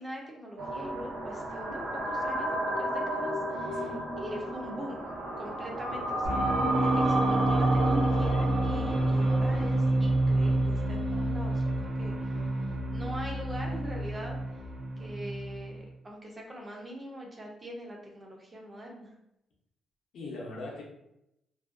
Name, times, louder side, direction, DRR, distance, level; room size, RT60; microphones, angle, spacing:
voice 1, 0.0-5.1 5.4-14.4 15.0-19.1, equal, 20° right, 0 dB, 0.4 m, -43 dB
sound 1, 0.6-10.7, right 1 dB, 90° right, 0.6 m, -32 dB
voice 2, 3.8-4.2 20.1-20.8, left 2 dB, 65° left, -3 dB, 0.6 m, -40 dB
sound 2, 6.2-15.8, right 1 dB, 55° right, 0.7 m, -28 dB
2.5 x 2.2 x 2.4 m, 0.82 s
cardioid pair, 175°, 0 cm